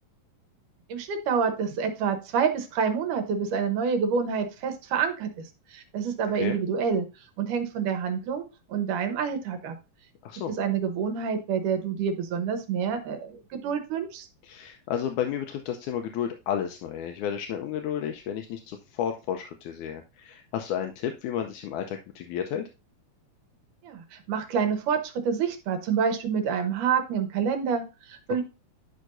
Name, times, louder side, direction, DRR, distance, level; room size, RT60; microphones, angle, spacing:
voice 1, 0.9-7.1 7.4-9.8 10.5-14.3 23.8-28.4, right 6 dB, 75° right, 7 dB, 2.5 m, -28 dB
voice 2, 14.4-22.7, left 9 dB, 80° left, 5 dB, 2.0 m, -32 dB
11.0 x 5.7 x 2.6 m, 0.29 s
omnidirectional pair, 3.7 m